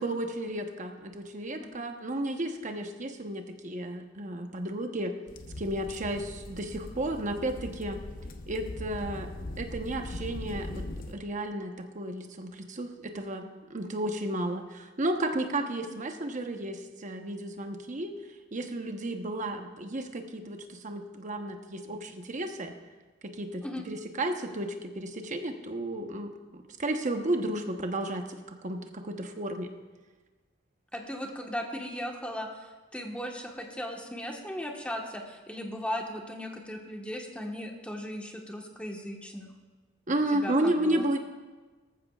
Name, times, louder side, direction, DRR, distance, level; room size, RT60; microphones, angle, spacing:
voice 1, 0.0-5.1 5.6-8.0 8.5-9.3 9.6-10.8 11.1-14.6 15.0-18.1 18.5-22.7 23.2-26.3 26.8-29.7 40.1-41.2, right 1 dB, 40° right, 5 dB, 1.0 m, -33 dB
sound 1, 5.3-11.1, left 2 dB, 45° left, 0.8 m, -40 dB
voice 2, 15.6-15.9 23.6-23.8 30.9-39.5 40.3-41.1, equal, 5° left, 1 dB, 1.3 m, -37 dB
18.5 x 14.5 x 2.4 m, 1.3 s
head